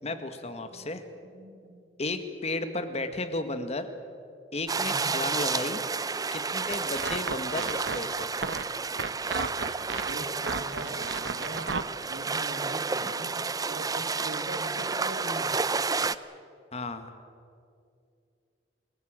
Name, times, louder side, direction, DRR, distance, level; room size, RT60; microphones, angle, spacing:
voice 1, 0.0-1.0 2.0-3.9 4.5-5.8 6.3-8.4 16.7-17.1, left 2 dB, 35° left, 9 dB, 1.6 m, -33 dB
voice 2, 1.3-1.8 4.8-5.2 9.8-11.7 12.1-13.4 13.7-15.6, right 1 dB, 75° right, 6 dB, 2.5 m, -41 dB
sound 1, 4.7-16.2, right 4 dB, 20° right, 0.5 m, -31 dB
sound 2, 6.7-11.8, right 4 dB, 90° right, 1.0 m, -34 dB
25.5 x 16.5 x 8.9 m, 2.4 s
head